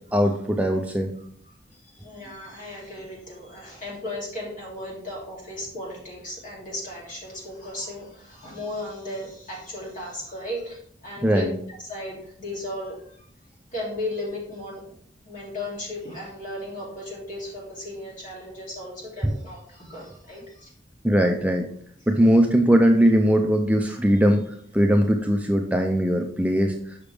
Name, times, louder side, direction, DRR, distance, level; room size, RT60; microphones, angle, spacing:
voice 1, 0.1-1.1 11.2-11.5 19.2-19.3 21.0-21.7 22.1-27.0, equal, 5° right, 3 dB, 0.4 m, -20 dB
voice 2, 1.7-11.5 11.8-13.3 13.7-15.0 15.2-20.7, left 1 dB, 45° left, -4 dB, 2.8 m, -36 dB
6.6 x 5.9 x 3.4 m, 0.63 s
head